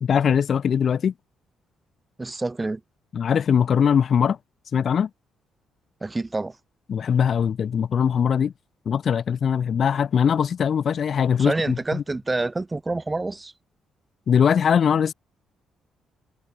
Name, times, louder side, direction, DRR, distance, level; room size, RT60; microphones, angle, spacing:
voice 1, 0.0-1.1 3.1-4.4 4.7-5.1 6.9-8.5 8.9-12.0 14.3-15.1, left 7 dB, 55° left, 0.6 m, -21 dB
voice 2, 2.2-2.8 6.0-6.6 11.4-13.5, right 2 dB, 20° right, 1.4 m, -27 dB
cardioid pair, 90°, 0 cm